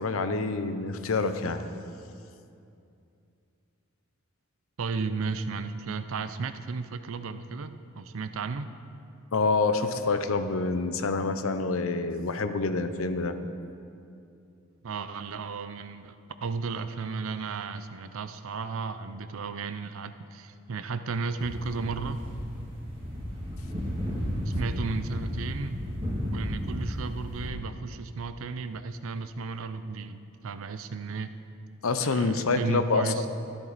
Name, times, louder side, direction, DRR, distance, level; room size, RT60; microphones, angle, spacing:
voice 1, 0.0-1.6 9.3-13.3 31.8-33.1, left 3 dB, 70° left, 9 dB, 0.6 m, -27 dB
voice 2, 4.8-8.7 14.8-16.2 16.4-22.2 24.5-25.8 26.3-31.3 32.0-33.3, right 4 dB, 70° right, 11 dB, 0.5 m, -34 dB
sound 1, 21.4-27.5, equal, 25° right, 2.5 m, -33 dB
14.0 x 10.5 x 4.1 m, 2.5 s
head